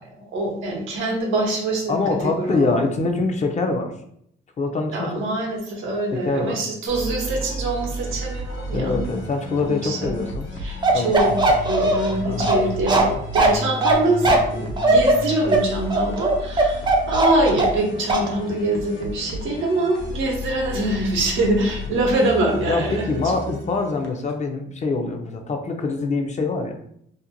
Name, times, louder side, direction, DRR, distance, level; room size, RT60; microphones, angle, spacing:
voice 1, 0.3-2.0 2.4-2.7 4.9-9.1 9.6-10.2 10.6-11.3 11.6-23.1, right 2 dB, 90° right, 0 dB, 0.7 m, -24 dB
voice 2, 1.9-3.9 4.6-5.2 6.1-6.6 8.7-10.5 10.9-11.3 12.2-12.7 22.0-22.1 22.7-26.7, left 3 dB, 35° left, 4 dB, 0.4 m, -24 dB
sound 1, 6.9-24.3, left 1 dB, 75° left, 0.7 m, -33 dB
Bark, 10.8-17.8 18.1-18.3, right 2 dB, 25° right, 0.5 m, -19 dB
2.5 x 2.1 x 2.8 m, 0.71 s
cardioid pair, 90°, 20 cm